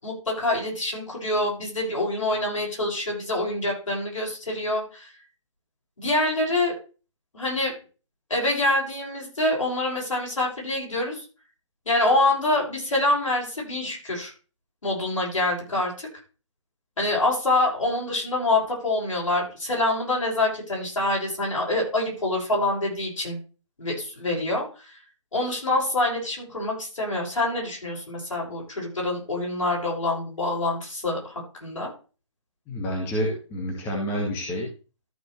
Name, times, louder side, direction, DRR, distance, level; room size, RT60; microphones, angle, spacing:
voice 1, 0.0-5.1 6.0-6.7 7.3-7.7 8.3-11.2 11.8-14.3 14.8-16.1 17.0-23.4 23.8-25.0 25.3-31.9, left 2 dB, 85° left, -2 dB, 6.5 m, -26 dB
voice 2, 32.7-34.7, equal, 15° left, -1 dB, 2.0 m, -28 dB
13.5 x 6.4 x 3.3 m, 0.35 s
hypercardioid pair, 160°, 16 cm